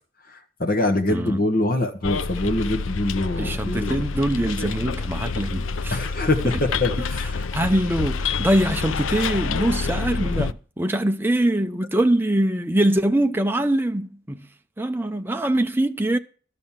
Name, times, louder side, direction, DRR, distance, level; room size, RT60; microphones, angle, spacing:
voice 1, 0.3-4.0 5.9-7.4, left 2 dB, 45° left, 1.5 m, -24 dB
voice 2, 1.1-1.4 3.4-6.0 7.4-14.5 14.8-16.2, right 1 dB, 10° right, 0.6 m, -23 dB
Bus, 2.0-10.5, left 4 dB, 85° left, 0.5 m, -28 dB
12.5 x 6.7 x 7.3 m
head